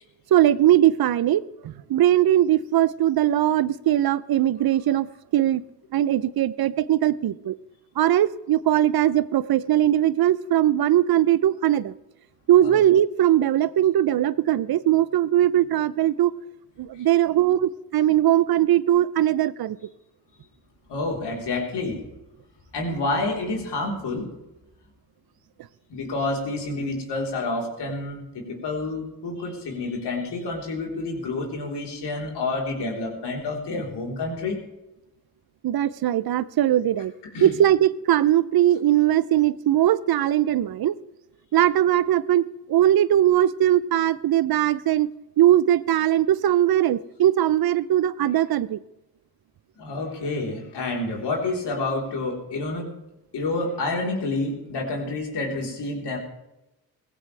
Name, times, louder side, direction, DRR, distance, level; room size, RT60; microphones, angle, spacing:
voice 1, 0.3-1.4 1.9-5.1 5.3-5.6 5.9-7.5 8.0-11.9 12.5-16.3 16.8-19.8 35.6-37.1 37.4-40.9 41.5-42.4 42.7-45.1 45.4-48.8, right 12 dB, 60° right, 18 dB, 0.7 m, -20 dB
voice 2, 20.9-22.0 22.7-24.3 25.9-34.6 37.3-37.5 49.8-52.9 53.3-56.2, left 2 dB, 75° left, 0 dB, 4.0 m, -29 dB
17.0 x 15.5 x 3.4 m, 0.93 s
supercardioid pair, 60°, 41 cm